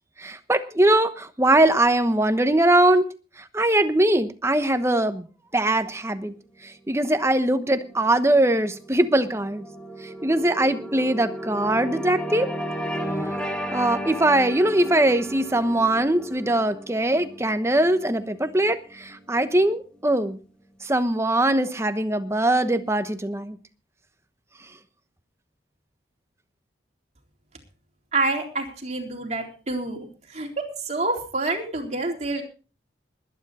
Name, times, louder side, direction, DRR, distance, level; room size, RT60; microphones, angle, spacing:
voice 1, 0.2-3.1 3.5-5.3 5.5-6.3 6.6-9.6 10.0-12.5 13.7-20.4 20.8-23.6, right 1 dB, 15° right, 10 dB, 1.0 m, -21 dB
sound 1, 7.3-19.8, equal, 5° left, 1.5 m, -35 dB
voice 2, 28.1-32.4, right 2 dB, 40° right, 1 dB, 3.8 m, -28 dB
20.5 x 10.0 x 4.2 m, 0.37 s
head